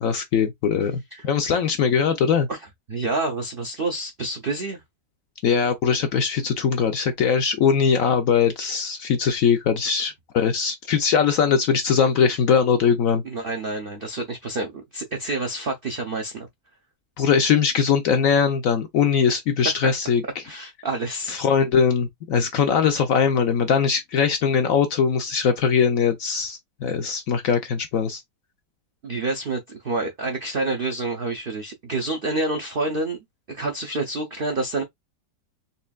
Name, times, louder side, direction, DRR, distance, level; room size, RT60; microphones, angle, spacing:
voice 1, 0.0-2.5 5.4-13.2 17.2-20.2 21.3-28.2, left 6 dB, 70° left, 0.8 m, -21 dB
voice 2, 2.5-4.8 13.2-16.5 20.4-21.4 29.0-33.2 33.5-34.8, right 2 dB, 85° right, 0.4 m, -28 dB
4.3 x 3.1 x 2.3 m
omnidirectional pair, 1.9 m